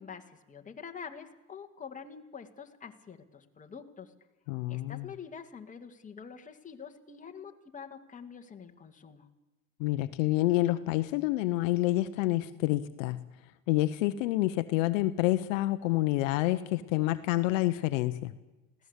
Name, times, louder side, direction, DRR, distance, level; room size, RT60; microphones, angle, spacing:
voice 1, 0.0-4.1 4.7-9.3, left 6 dB, 20° left, 4 dB, 2.1 m, -46 dB
voice 2, 4.5-5.1 9.8-13.2 13.7-18.3, left 17 dB, 70° left, 11 dB, 1.0 m, -28 dB
20.5 x 16.5 x 8.2 m, 1.1 s
supercardioid pair, 105°, 40 cm